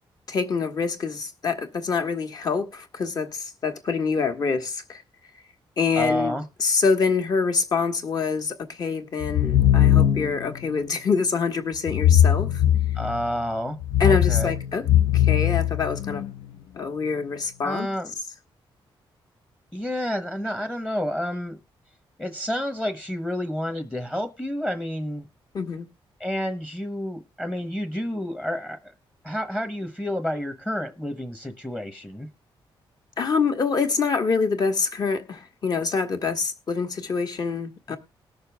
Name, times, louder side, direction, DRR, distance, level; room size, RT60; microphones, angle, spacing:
voice 1, 0.3-5.0 5.8-12.6 14.0-14.9 15.1-16.2 16.8-17.9 25.5-25.9 33.2-38.0, left 5 dB, 45° left, 1.7 m, -25 dB
voice 2, 6.0-6.4 12.9-13.8 14.0-14.5 17.6-18.1 19.7-21.6 22.2-25.3 26.2-28.9 29.2-32.3 37.9-38.0, equal, 10° left, 1.1 m, -29 dB
sound 1, 9.2-10.5 11.9-13.3 13.8-16.3, left 11 dB, 75° left, 0.6 m, -20 dB
19.5 x 6.7 x 3.5 m
wide cardioid pair, 145°, 9 cm